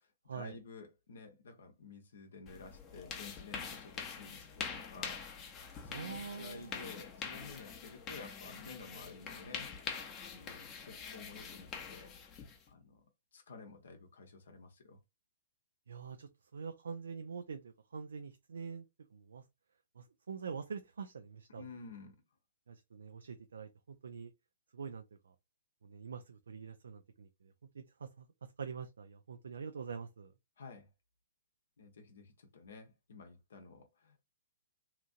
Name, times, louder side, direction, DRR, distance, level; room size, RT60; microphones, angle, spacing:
voice 1, 0.0-9.7 10.2-12.1 12.7-13.0 13.3-15.0 21.5-22.2 30.6-30.9 31.8-34.3, left 4 dB, 70° left, 0.8 m, -52 dB
sound 1, 2.5-12.7, left 6 dB, 25° left, 0.7 m, -45 dB
voice 2, 5.9-6.8 15.9-18.9 19.1-19.4 20.0-21.7 22.7-24.3 24.7-25.3 25.8-28.3 28.6-30.3, right 5 dB, 75° right, 0.4 m, -45 dB
2.9 x 2.6 x 2.4 m
hypercardioid pair, 125°, 0 cm